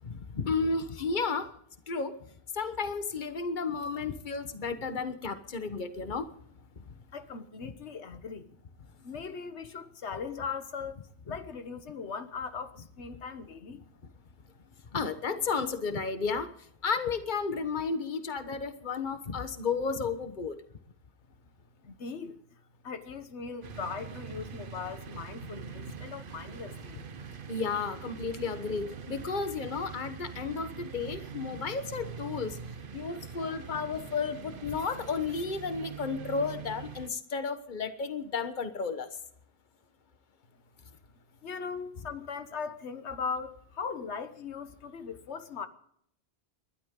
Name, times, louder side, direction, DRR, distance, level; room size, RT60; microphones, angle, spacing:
voice 1, 0.0-1.5 1.9-2.2 2.5-6.3 14.9-16.5 16.8-20.5 27.5-32.6 32.9-39.1, left 4 dB, 45° left, 1.4 m, -32 dB
voice 2, 7.1-8.5 9.0-11.0 11.2-13.8 21.8-27.0 41.4-45.7, left 5 dB, 85° left, 1.4 m, -39 dB
sound 1, 23.6-37.1, right 6 dB, 55° right, 1.0 m, -44 dB
29.5 x 12.0 x 3.8 m
omnidirectional pair, 1.1 m